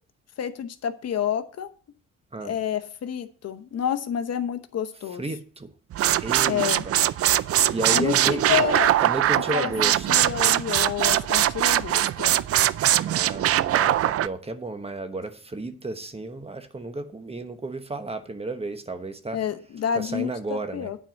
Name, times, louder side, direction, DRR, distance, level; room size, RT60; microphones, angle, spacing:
voice 1, 0.4-1.7 2.4-5.2 6.5-6.8 7.9-8.9 9.5-12.4 19.3-21.0, left 9 dB, 55° left, 0.9 m, -29 dB
voice 2, 5.2-5.7 6.2-7.0 7.7-8.6 9.0-10.1 13.0-19.4 19.9-20.9, right 2 dB, 20° right, 1.1 m, -32 dB
sound 1, 5.9-14.3, right 12 dB, 50° right, 0.4 m, -22 dB
9.0 x 4.5 x 7.5 m
cardioid pair, 90°, 30 cm